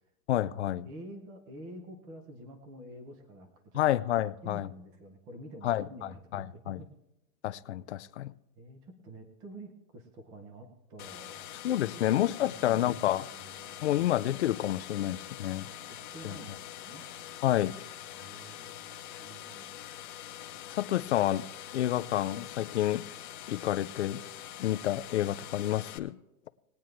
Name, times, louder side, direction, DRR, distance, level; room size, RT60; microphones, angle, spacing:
voice 1, 0.3-0.9 3.7-4.7 5.6-5.9 6.3-6.8 7.4-8.3 11.6-13.2 13.8-15.7 16.2-16.4 17.4-17.7 20.7-23.0 23.5-24.2 24.6-26.2, left 13 dB, 50° left, 0.5 m, -29 dB
voice 2, 0.8-3.9 4.4-6.9 8.6-11.5 11.9-12.0 12.4-14.0 16.1-17.0 18.1-18.9 19.2-19.8, right 1 dB, 10° right, 0.5 m, -48 dB
sound 1, 11.0-26.0, left 11 dB, 30° left, 0.9 m, -44 dB
20.5 x 9.0 x 3.2 m
hypercardioid pair, 165°, 44 cm